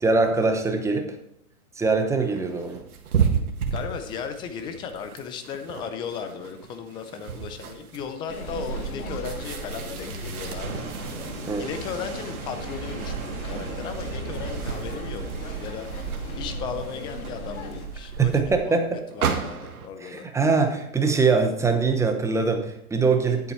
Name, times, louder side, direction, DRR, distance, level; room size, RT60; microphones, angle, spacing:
voice 1, 0.0-1.2 1.8-2.8 11.5-11.7 18.2-19.0 20.0-23.5, right 4 dB, 5° right, 5 dB, 0.8 m, -23 dB
sound 1, 2.2-19.9, right 7 dB, 75° right, 1.8 m, -34 dB
voice 2, 3.7-10.8 11.6-15.9 16.4-18.8 19.1-20.3, left 6 dB, 10° left, 8 dB, 0.4 m, -36 dB
sound 2, 8.3-17.9, left 4 dB, 75° left, 1.9 m, -39 dB
sound 3, 8.3-18.6, right 6 dB, 55° right, 2.6 m, -36 dB
10.0 x 8.1 x 4.4 m, 0.75 s
hypercardioid pair, 135°, 44 cm